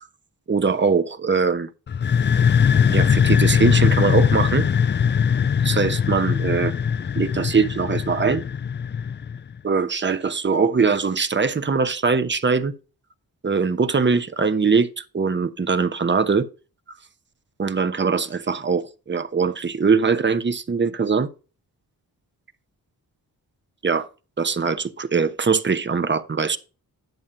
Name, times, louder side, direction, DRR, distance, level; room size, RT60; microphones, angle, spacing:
voice 1, 0.5-1.7 2.9-4.7 5.6-6.7 7.2-8.4 9.6-12.7 13.4-16.5 17.6-21.3 23.8-24.1 24.4-26.6, right 5 dB, 30° right, 1.0 m, -21 dB
sound 1, 1.9-9.5, left 7 dB, 30° left, 0.4 m, -20 dB
10.5 x 7.2 x 2.7 m
cardioid pair, 75°, 37 cm